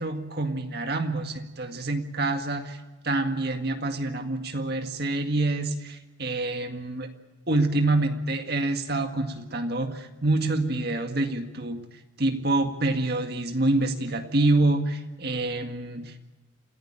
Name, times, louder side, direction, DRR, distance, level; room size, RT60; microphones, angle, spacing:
voice 1, 0.0-7.1 7.5-11.8 12.2-16.2, right 2 dB, 50° right, 6 dB, 1.9 m, -27 dB
28.0 x 16.0 x 8.9 m, 1.2 s
head